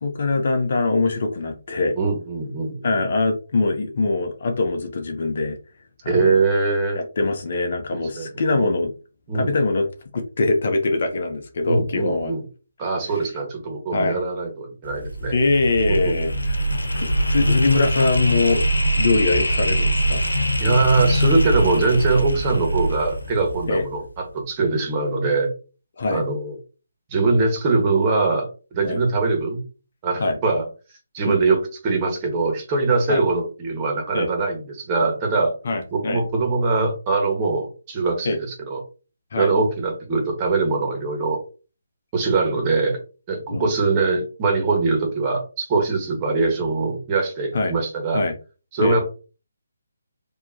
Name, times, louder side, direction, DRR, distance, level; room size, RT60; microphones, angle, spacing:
voice 1, 0.0-1.9 2.8-5.6 6.0-6.3 6.9-8.9 9.3-9.9 10.1-12.3 13.9-14.2 15.3-16.5 16.9-18.7 19.0-20.2 23.7-23.8 26.0-26.2 28.8-29.0 30.2-30.4 31.2-31.4 33.1-33.2 34.1-34.3 35.6-36.2 38.2-38.4 39.3-39.5 43.5-43.7 47.5-47.7 48.1-48.3 48.8-49.0, left 3 dB, 55° left, 0.8 m, -22 dB
voice 2, 1.9-2.9 6.0-7.0 7.9-8.7 9.3-9.6 11.7-12.4 12.8-15.3 16.0-16.1 20.6-25.5 26.1-26.6 27.1-29.6 30.0-30.6 31.1-35.5 35.9-38.8 39.3-41.4 42.1-43.0 43.3-48.2 48.7-49.0, right 3 dB, 25° right, 1.5 m, -22 dB
sound 1, 14.8-24.0, equal, 90° left, 1.0 m, -23 dB
4.6 x 2.9 x 2.8 m
figure-of-eight pair, 150°, 0 cm